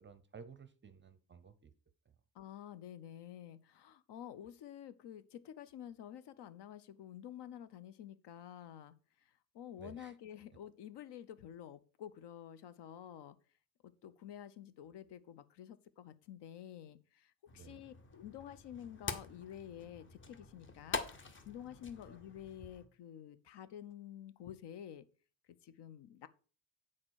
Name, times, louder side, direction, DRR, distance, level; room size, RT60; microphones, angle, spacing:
voice 1, 0.0-1.7 9.8-10.1 17.5-17.8, right 5 dB, 25° right, 13 dB, 0.6 m, -54 dB
voice 2, 2.3-13.4 13.8-21.0 21.4-25.1 25.6-26.3, left 10 dB, 60° left, 14 dB, 0.8 m, -50 dB
sound 1, 17.5-22.9, left 4 dB, 25° left, 0.9 m, -45 dB
8.7 x 4.3 x 6.3 m, 0.39 s
cardioid pair, 160°, 46 cm